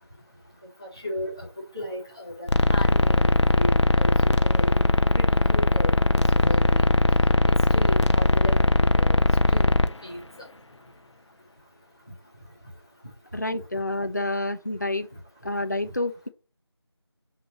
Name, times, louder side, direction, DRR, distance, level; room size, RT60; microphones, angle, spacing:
voice 1, 0.8-1.5 1.7-4.1 4.4-4.7 5.1-5.9 6.3-6.9 7.5-9.2 9.5-9.7 10.0-10.2, left 1 dB, 10° left, 0.8 m, -34 dB
sound 1, 2.5-9.9, left 2 dB, 90° left, 0.6 m, -20 dB
voice 2, 13.3-15.1 15.4-16.3, left 2 dB, 40° left, 0.5 m, -28 dB
5.8 x 3.2 x 5.4 m
figure-of-eight pair, 175°, 14 cm